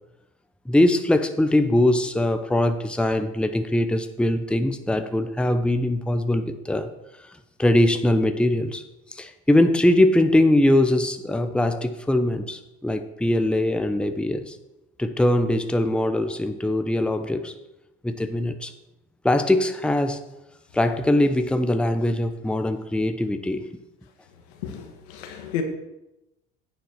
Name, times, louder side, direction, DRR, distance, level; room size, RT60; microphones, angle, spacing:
voice 1, 0.7-6.9 7.6-8.8 9.1-14.6 15.0-17.5 18.0-18.7 19.2-20.2 20.7-23.7, left 1 dB, 5° left, 8 dB, 0.9 m, -22 dB
voice 2, 24.6-25.6, left 8 dB, 80° left, 4 dB, 1.8 m, -32 dB
9.5 x 7.0 x 6.7 m, 0.95 s
hypercardioid pair, 70°, 32 cm